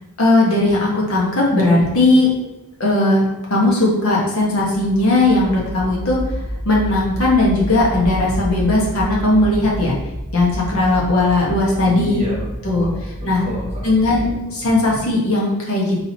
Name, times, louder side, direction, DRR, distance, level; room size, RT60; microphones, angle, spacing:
voice 1, 0.2-2.3 2.8-3.2 3.5-6.2 6.6-9.9 10.3-12.2 12.6-12.9 13.2-13.4 13.8-16.0, left 2 dB, 90° left, -3 dB, 1.2 m, -17 dB
sound 1, 4.6-14.4, equal, 25° left, 0.8 m, -29 dB
voice 2, 11.7-14.5, equal, 30° right, -4 dB, 1.5 m, -32 dB
3.9 x 2.9 x 4.1 m, 0.99 s
head